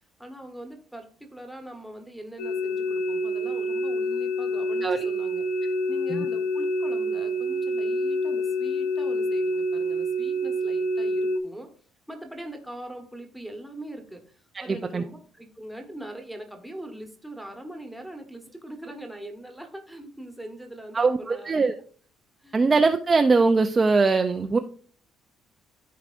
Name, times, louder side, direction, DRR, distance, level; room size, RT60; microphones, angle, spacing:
voice 1, 0.2-5.4 5.9-11.7 12.1-21.6 22.4-22.7, right 1 dB, ahead, 3 dB, 1.2 m, -41 dB
sound 1, 2.4-11.4, equal, 85° left, 0.8 m, -27 dB
voice 2, 14.5-15.0 20.9-21.7 22.5-24.6, right 4 dB, 20° right, 6 dB, 0.4 m, -21 dB
13.5 x 4.7 x 2.5 m, 0.43 s
cardioid pair, 165°, 0 cm